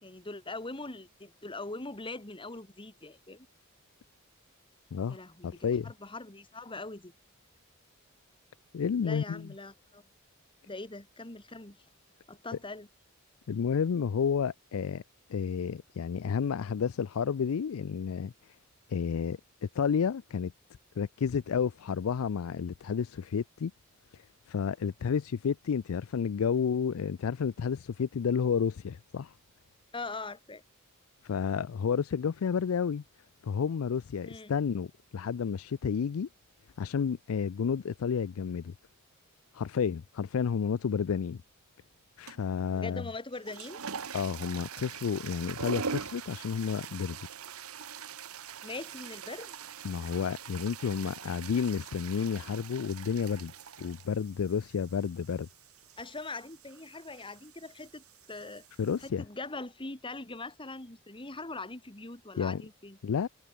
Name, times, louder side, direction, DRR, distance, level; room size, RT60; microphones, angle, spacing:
voice 1, 0.0-3.5 5.1-7.1 9.0-10.0 10.7-11.8 12.3-12.9 29.9-30.6 34.2-34.5 42.7-43.8 48.6-49.6 56.0-58.7 59.0-63.0, left 3 dB, 25° left, 2.2 m, -42 dB
voice 2, 5.4-5.9 8.7-9.5 13.5-15.0 15.3-18.3 18.9-20.5 21.0-23.7 24.5-29.3 31.2-33.0 33.4-36.3 36.8-38.7 39.5-41.4 42.2-43.1 44.1-47.2 49.8-53.5 53.8-55.5 58.8-59.2 62.4-62.6 63.0-63.3, left 6 dB, 70° left, 0.4 m, -31 dB
sound 1, 42.3-42.6 43.3-59.1, right 6 dB, 85° right, 1.4 m, -43 dB
head